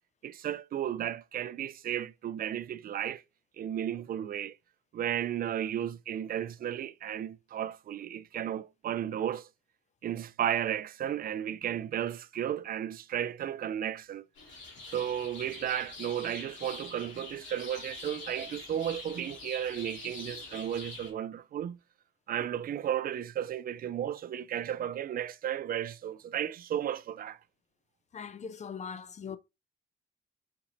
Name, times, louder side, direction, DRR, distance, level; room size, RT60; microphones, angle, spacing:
voice 1, 0.2-3.2 3.6-4.6 4.9-9.5 10.0-14.3 14.8-21.8 22.3-27.4, right 10 dB, 45° right, 0.4 m, -34 dB
sound 1, 14.4-21.1, left 3 dB, 70° left, 2.1 m, -45 dB
voice 2, 28.1-29.4, left 6 dB, 35° left, 0.5 m, -40 dB
4.4 x 4.0 x 2.5 m
cardioid pair, 90°, 20 cm